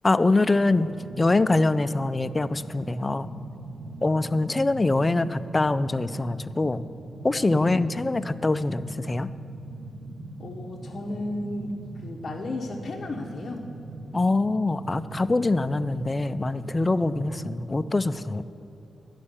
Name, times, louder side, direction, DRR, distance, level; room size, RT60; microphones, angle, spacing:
voice 1, 0.0-0.9 1.2-3.3 4.0-6.8 7.2-9.3 14.1-18.5, left 2 dB, 20° left, 13 dB, 0.3 m, -24 dB
sound 1, 0.5-18.1, right 2 dB, 90° right, 1.1 m, -41 dB
voice 2, 7.5-7.8 10.4-13.7, left 2 dB, 45° left, -3 dB, 0.9 m, -34 dB
11.5 x 5.3 x 8.6 m, 2.7 s
wide cardioid pair, 120°, 0 cm